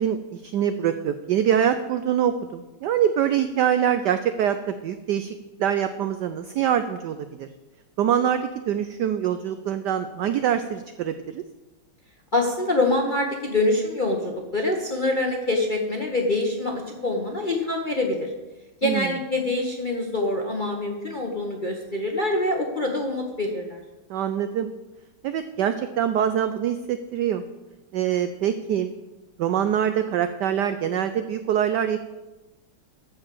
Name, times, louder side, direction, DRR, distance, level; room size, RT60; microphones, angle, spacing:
voice 1, 0.0-7.5 8.0-11.4 18.8-19.1 24.1-24.7 25.2-27.4 27.9-28.9 29.4-32.0, right 9 dB, 80° right, 10 dB, 0.9 m, -24 dB
voice 2, 12.3-18.3 18.8-23.8, left 2 dB, 35° left, 1 dB, 0.8 m, -25 dB
13.0 x 4.7 x 7.6 m, 1.1 s
omnidirectional pair, 2.3 m